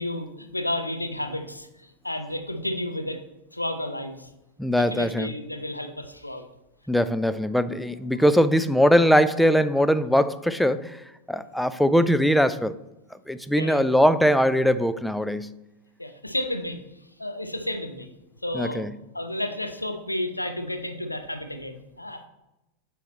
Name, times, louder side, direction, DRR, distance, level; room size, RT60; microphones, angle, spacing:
voice 1, 0.0-3.2 3.5-4.3 4.7-6.4 8.0-8.2 11.4-11.5 13.5-14.0 16.0-16.8 17.2-18.1 18.4-18.9 19.1-22.2, left 1 dB, 85° left, 6 dB, 0.7 m, -32 dB
voice 2, 4.6-5.3 6.9-11.0 11.3-12.7 13.3-15.5 18.5-18.9, equal, ahead, 13 dB, 0.3 m, -21 dB
8.1 x 4.2 x 4.1 m, 0.95 s
figure-of-eight pair, 90°, 0 cm